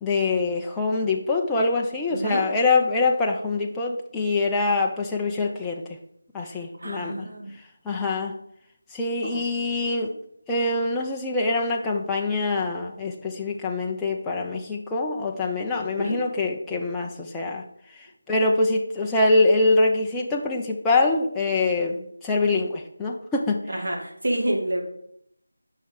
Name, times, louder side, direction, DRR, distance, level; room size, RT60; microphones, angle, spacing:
voice 1, 0.0-5.8 6.3-7.3 7.8-8.4 8.9-10.1 10.5-17.6 18.0-23.6, left 3 dB, 5° left, -2 dB, 0.5 m, -24 dB
voice 2, 2.1-2.5 6.4-7.5 9.2-9.4 15.9-16.2 23.7-24.8, right 1 dB, 60° right, 1 dB, 2.2 m, -28 dB
7.6 x 5.6 x 5.2 m, 0.72 s
figure-of-eight pair, 170°, 0 cm